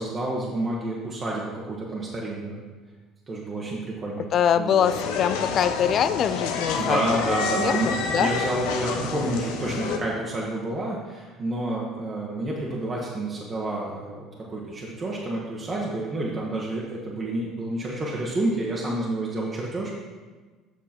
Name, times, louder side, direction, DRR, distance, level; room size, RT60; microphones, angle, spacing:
voice 1, 0.0-2.6 3.3-4.2 4.6-4.9 6.7-19.9, right 2 dB, 35° right, -4 dB, 1.4 m, -29 dB
voice 2, 4.3-7.0 7.6-8.3, left 8 dB, 50° left, 13 dB, 0.4 m, -23 dB
sound 1, 4.8-10.0, left 5 dB, 80° left, 0.7 m, -28 dB
7.8 x 5.3 x 4.4 m, 1.3 s
hypercardioid pair, 75°, 0 cm